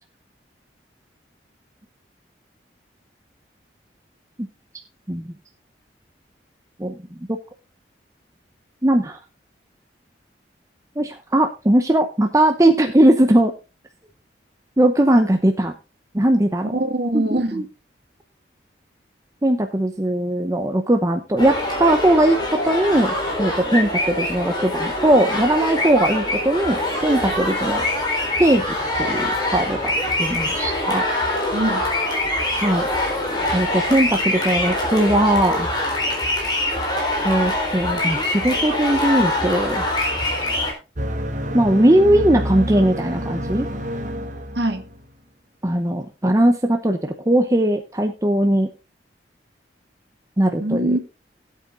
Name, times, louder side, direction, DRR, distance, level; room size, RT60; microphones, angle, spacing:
voice 1, 8.8-9.2 11.0-13.5 14.8-15.7 16.1-16.7 17.1-17.6 19.4-22.4 22.6-27.8 28.4-31.1 32.5-32.9 33.5-35.7 37.2-39.8 41.5-43.7 45.6-48.7 50.4-51.0, right 1 dB, 20° right, 0.8 m, -19 dB
voice 2, 16.7-17.7 31.5-31.8 44.5-44.8 50.6-51.0, right 1 dB, 65° right, 1.9 m, -23 dB
sound 1, 21.4-40.7, left 1 dB, 25° left, 3.9 m, -24 dB
sound 2, 41.0-45.0, equal, 45° right, 1.4 m, -28 dB
17.5 x 8.3 x 2.5 m
head